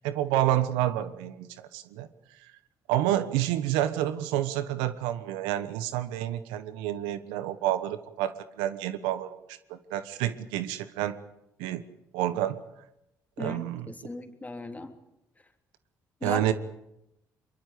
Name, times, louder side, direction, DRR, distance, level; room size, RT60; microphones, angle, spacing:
voice 1, 0.0-2.1 2.9-8.3 8.6-11.2 11.6-11.8 12.1-12.6 13.4-13.9 16.2-16.5, right 13 dB, 90° right, 13 dB, 1.1 m, -29 dB
voice 2, 13.4-14.9 16.2-16.5, left 2 dB, 20° left, 6 dB, 3.2 m, -37 dB
22.5 x 22.5 x 8.4 m, 0.87 s
supercardioid pair, 55°, 8 cm